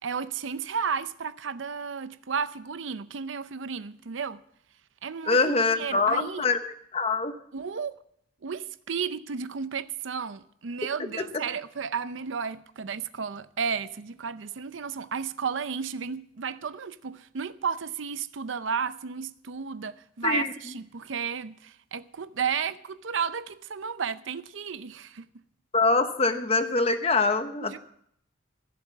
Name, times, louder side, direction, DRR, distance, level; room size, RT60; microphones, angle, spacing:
voice 1, 0.0-4.4 5.0-6.5 7.5-7.9 8.4-25.3 27.6-27.8, right 6 dB, 75° right, 0.6 m, -33 dB
voice 2, 5.3-6.6 6.9-7.4 20.2-20.5 25.7-27.8, left 3 dB, 30° left, 1.0 m, -24 dB
15.0 x 7.4 x 7.5 m
head